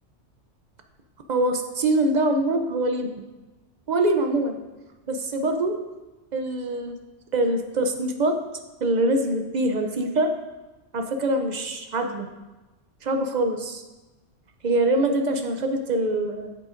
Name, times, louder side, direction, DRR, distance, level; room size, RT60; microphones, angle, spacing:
voice 1, 1.3-3.1 3.9-4.6 5.1-5.8 6.3-7.0 7.3-8.3 8.8-10.3 10.9-12.3 13.0-13.8 14.6-16.6, right 1 dB, 50° right, 5 dB, 0.5 m, -24 dB
8.4 x 7.7 x 2.5 m, 1.1 s
omnidirectional pair, 1.3 m